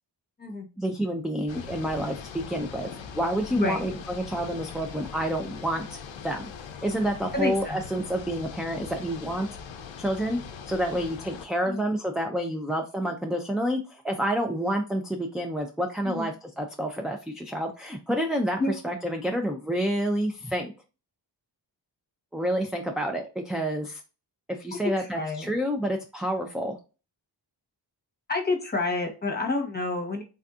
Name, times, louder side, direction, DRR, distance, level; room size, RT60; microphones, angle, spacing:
voice 1, 0.8-6.5 6.8-9.5 10.0-10.4 10.7-20.7 22.3-24.0 24.6-26.8, equal, ahead, 3 dB, 0.3 m, -29 dB
sound 1, 1.5-11.4, left 6 dB, 85° left, 0.6 m, -41 dB
voice 2, 7.3-7.8 11.7-11.9 16.0-16.3 18.6-18.7 25.0-25.5 28.3-30.2, left 2 dB, 20° left, 3 dB, 1.0 m, -28 dB
3.4 x 2.6 x 2.4 m, 0.32 s
wide cardioid pair, 75°, 45 cm